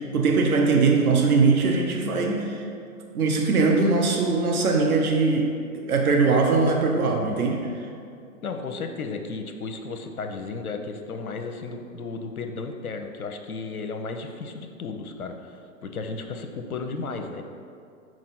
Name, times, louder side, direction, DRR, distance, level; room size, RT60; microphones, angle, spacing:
voice 1, 0.0-2.6 3.1-7.7, right 4 dB, 80° right, 1 dB, 1.0 m, -21 dB
voice 2, 8.4-17.4, left 4 dB, 80° left, 5 dB, 0.8 m, -34 dB
6.2 x 4.4 x 4.2 m, 2.4 s
figure-of-eight pair, 120°, 43 cm